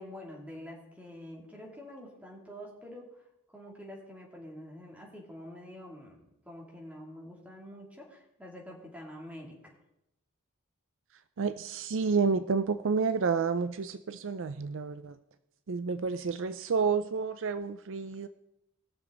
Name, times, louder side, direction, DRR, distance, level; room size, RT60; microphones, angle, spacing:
voice 1, 0.0-9.5, equal, 5° right, -2 dB, 2.7 m, -47 dB
voice 2, 11.4-15.2 15.7-18.3, right 5 dB, 65° right, 12 dB, 0.5 m, -30 dB
20.5 x 6.9 x 3.9 m, 0.83 s
head